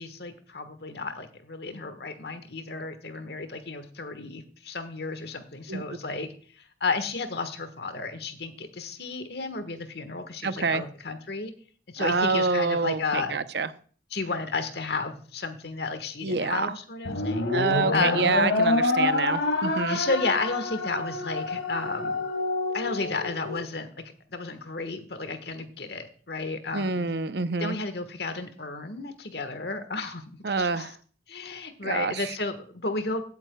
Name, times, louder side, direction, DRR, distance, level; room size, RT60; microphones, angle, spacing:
voice 1, 0.0-6.3 6.6-11.5 11.9-13.4 14.1-17.5 17.9-18.4 19.9-22.2 22.7-23.9 24.3-27.1 27.6-30.9 31.3-33.2, left 3 dB, 55° left, 9 dB, 1.4 m, -32 dB
voice 2, 10.4-10.8 12.0-13.7 16.2-16.7 17.5-20.0 26.7-27.8 30.4-30.9 31.8-32.3, right 4 dB, 60° right, 13 dB, 0.7 m, -27 dB
sound 1, 17.0-23.6, left 2 dB, 80° left, 2.3 m, -27 dB
16.5 x 8.7 x 2.3 m, 0.43 s
head